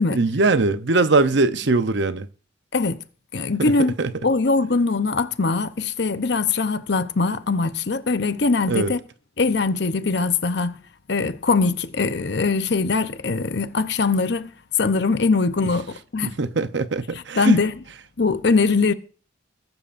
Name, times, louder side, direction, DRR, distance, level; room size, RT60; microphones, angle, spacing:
voice 1, 0.1-2.3 3.6-3.7 4.0-4.1 8.7-8.9 16.2-17.6, right 3 dB, 65° right, 0.8 m, -21 dB
voice 2, 3.3-3.9 4.2-9.0 9.4-10.8 11.1-16.4 17.1-17.8 18.2-18.9, left 4 dB, 60° left, 0.8 m, -22 dB
21.5 x 12.5 x 2.6 m
head